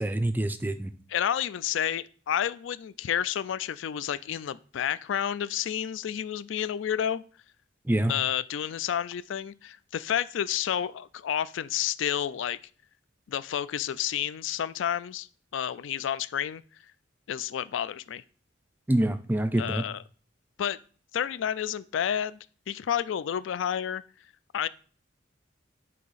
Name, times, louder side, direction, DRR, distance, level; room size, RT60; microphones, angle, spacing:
voice 1, 0.0-0.9 7.9-8.1 18.9-19.8, right 1 dB, 10° right, 11 dB, 0.3 m, -26 dB
voice 2, 1.1-7.2 8.1-12.6 13.3-15.3 15.5-16.6 17.3-18.2 19.6-20.0 20.6-20.8 21.1-22.4 22.7-24.0 24.5-24.7, left 9 dB, 75° left, 17 dB, 0.3 m, -30 dB
8.3 x 2.8 x 4.1 m, 0.42 s
head